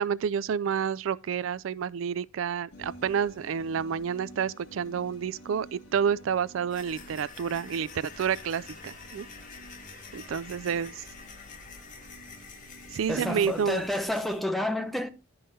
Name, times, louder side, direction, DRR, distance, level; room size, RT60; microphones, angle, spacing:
voice 1, 0.0-9.3 10.1-11.0 12.9-13.8, right 7 dB, 70° right, 0.4 m, -29 dB
sound 1, 2.7-14.1, equal, 70° left, 2.0 m, -51 dB
sound 2, 6.7-14.4, left 4 dB, 40° left, 1.3 m, -47 dB
voice 2, 13.1-15.1, left 1 dB, ahead, 0.7 m, -29 dB
11.0 x 5.6 x 4.0 m
head